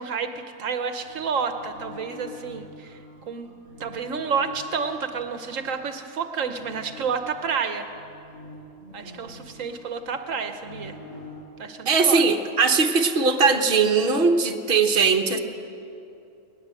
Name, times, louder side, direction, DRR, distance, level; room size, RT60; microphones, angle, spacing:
voice 1, 0.0-3.0 3.3-3.5 3.8-7.9 8.9-11.0 11.6-12.2, right 6 dB, 80° right, 7 dB, 1.3 m, -30 dB
sound 1, 1.0-5.7 6.4-11.3, left 2 dB, 55° left, 7.5 m, -44 dB
voice 2, 11.8-15.4, right 4 dB, 45° right, 4 dB, 1.4 m, -20 dB
19.5 x 19.5 x 7.7 m, 2.8 s
omnidirectional pair, 1.4 m